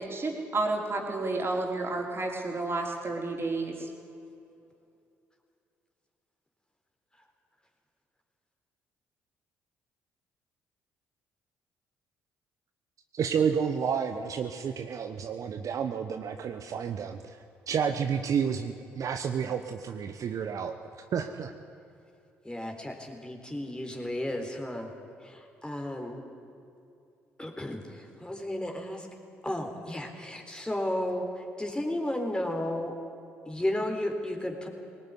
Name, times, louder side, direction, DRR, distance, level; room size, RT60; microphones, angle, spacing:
voice 1, 0.0-3.9, right 2 dB, 35° right, 1 dB, 4.4 m, -31 dB
voice 2, 13.1-17.4 17.7-20.8 21.1-21.5, right 7 dB, 55° right, 7 dB, 1.1 m, -30 dB
voice 3, 22.4-24.9 25.2-26.2 27.4-29.1 29.4-32.9 33.5-34.7, left 1 dB, 15° left, 3 dB, 3.8 m, -33 dB
19.0 x 18.0 x 9.8 m, 2.6 s
hypercardioid pair, 50°, 7 cm